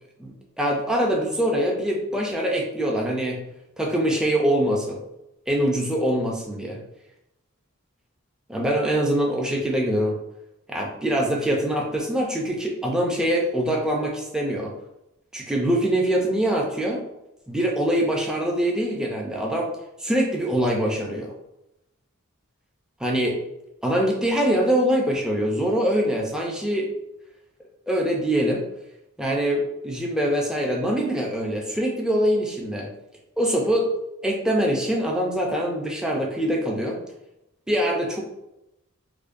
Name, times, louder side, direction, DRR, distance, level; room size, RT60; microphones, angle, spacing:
voice 1, 0.2-3.4 3.8-5.0 5.5-6.8 8.5-10.2 10.7-14.7 15.3-17.0 17.5-19.7 20.0-21.3 23.0-23.4 23.8-26.9 27.9-28.7 29.2-32.9 33.4-33.9 34.2-37.0 37.7-38.2, equal, 5° right, -1 dB, 0.5 m, -24 dB
4.9 x 2.2 x 2.5 m, 0.89 s
head